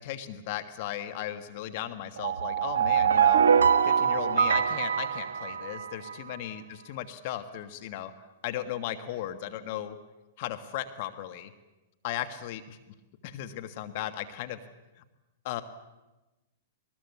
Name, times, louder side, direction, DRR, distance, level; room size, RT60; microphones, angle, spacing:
voice 1, 0.0-3.4 3.8-8.1 8.4-10.0 10.4-11.5 12.0-12.9 13.2-14.6 15.4-15.6, left 12 dB, 55° left, 9 dB, 1.6 m, -36 dB
sound 1, 2.2-6.1, right 7 dB, 85° right, 0.9 m, -24 dB
21.5 x 20.0 x 8.4 m, 1.1 s
hypercardioid pair, 120°, 0 cm